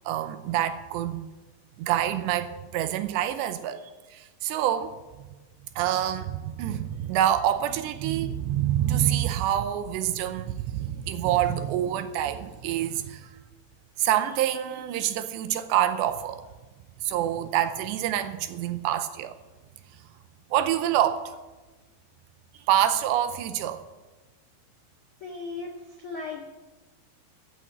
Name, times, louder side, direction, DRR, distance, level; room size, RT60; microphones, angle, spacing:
voice 1, 0.1-1.2 1.8-4.9 5.8-13.3 14.0-16.4 17.0-19.3 20.5-21.3 22.7-23.8, right 11 dB, 80° right, 2.7 m, -26 dB
voice 2, 25.2-26.4, left 4 dB, 85° left, 1.1 m, -37 dB
15.0 x 8.5 x 7.4 m
omnidirectional pair, 5.4 m